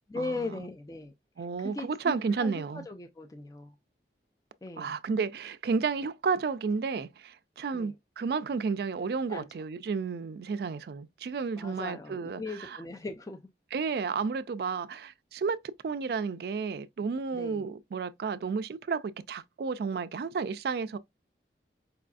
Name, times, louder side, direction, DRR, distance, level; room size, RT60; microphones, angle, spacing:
voice 1, 0.1-3.7 4.6-5.0 7.7-7.9 9.3-9.5 11.6-13.5 17.3-17.7, left 3 dB, 20° left, 0.4 m, -39 dB
voice 2, 1.4-2.9 4.8-12.8 13.7-15.6 15.8-21.0, right 5 dB, 60° right, 0.3 m, -32 dB
4.7 x 2.5 x 2.3 m
head